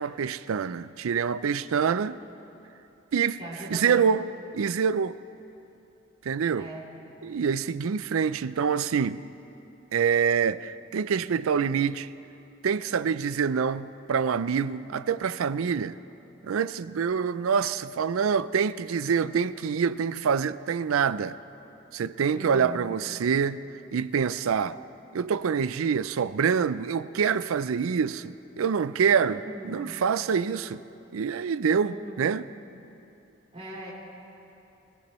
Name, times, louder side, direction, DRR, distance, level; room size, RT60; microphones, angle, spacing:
voice 1, 0.0-2.2 3.1-3.4 3.7-5.2 6.2-6.7 7.2-9.2 9.9-12.1 12.6-16.0 16.4-21.4 21.9-23.6 23.9-24.8 25.1-29.4 29.6-30.8 31.1-32.5, right 6 dB, 85° right, 0.4 m, -26 dB
voice 2, 3.4-4.1 6.5-6.9 22.3-22.9 29.3-29.9 31.8-32.4 33.5-33.9, right 1 dB, 30° right, 3.5 m, -40 dB
26.0 x 16.0 x 3.1 m
head